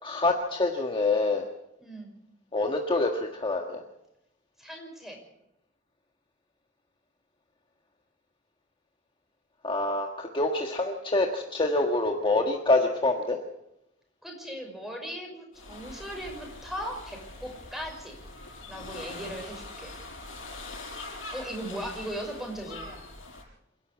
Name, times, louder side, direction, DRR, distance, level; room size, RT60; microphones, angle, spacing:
voice 1, 0.0-1.5 2.5-3.8 9.6-13.4, left 2 dB, 25° left, 2 dB, 1.6 m, -26 dB
voice 2, 4.6-5.2 14.2-18.2 18.7-20.0 21.3-23.0, equal, ahead, 2 dB, 5.7 m, -38 dB
sound 1, 15.5-23.4, left 2 dB, 85° left, 7.4 m, -43 dB
28.0 x 11.0 x 8.4 m, 0.85 s
head